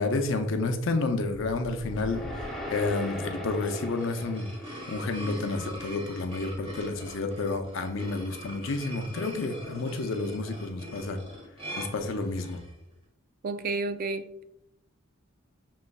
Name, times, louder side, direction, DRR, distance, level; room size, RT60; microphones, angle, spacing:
voice 1, 0.0-4.5 4.9-11.2 11.8-12.6, left 3 dB, 65° left, 6 dB, 0.5 m, -30 dB
sound 1, 1.2-5.5, left 1 dB, ahead, 0.7 m, -39 dB
sound 2, 3.6-12.7, equal, 30° right, 1.3 m, -42 dB
voice 2, 13.4-14.4, right 3 dB, 45° right, 9 dB, 0.3 m, -31 dB
6.3 x 3.0 x 2.3 m, 0.83 s
head